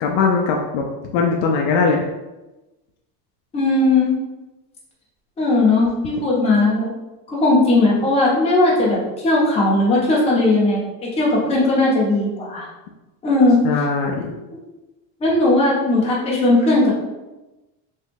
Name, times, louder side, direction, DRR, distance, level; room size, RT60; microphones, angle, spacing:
voice 1, 0.0-0.8 1.1-2.0 13.6-14.3, left 5 dB, 55° left, 1 dB, 0.5 m, -20 dB
voice 2, 3.5-4.2 5.4-6.9 7.3-10.8 11.2-12.7 13.2-13.6 15.2-16.9, left 2 dB, 15° left, -5 dB, 0.6 m, -17 dB
3.1 x 2.3 x 3.3 m, 1.0 s
cardioid pair, 155°, 50 cm